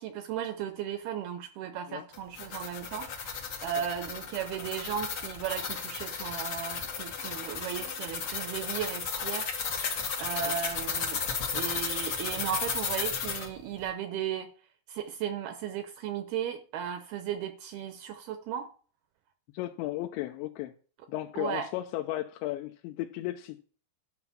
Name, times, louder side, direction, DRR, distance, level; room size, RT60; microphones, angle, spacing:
voice 1, 0.0-3.1 3.6-9.5 10.2-11.2 11.5-14.5 14.9-18.7 21.4-21.7, right 9 dB, 80° right, 2.4 m, -35 dB
sound 1, 2.1-13.5, left 6 dB, 60° left, 1.4 m, -34 dB
voice 2, 19.5-20.7 21.1-23.6, left 15 dB, 90° left, 3.0 m, -35 dB
11.5 x 5.8 x 5.8 m
omnidirectional pair, 5.2 m